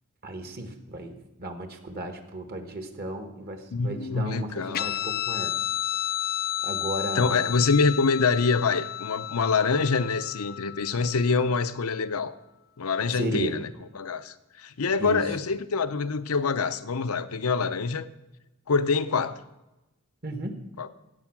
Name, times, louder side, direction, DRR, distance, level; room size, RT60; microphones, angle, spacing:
voice 1, 0.2-5.5 6.6-7.5 13.1-13.5 15.0-15.3 20.2-20.6, right 1 dB, 45° right, 6 dB, 1.5 m, -34 dB
voice 2, 3.7-4.9 7.2-12.4 12.8-18.1 18.7-19.4 20.8-20.9, left 4 dB, 80° left, 12 dB, 0.7 m, -25 dB
Guitar, 4.7-11.7, left 11 dB, 45° left, 0.3 m, -32 dB
16.0 x 7.9 x 6.1 m, 1.0 s
head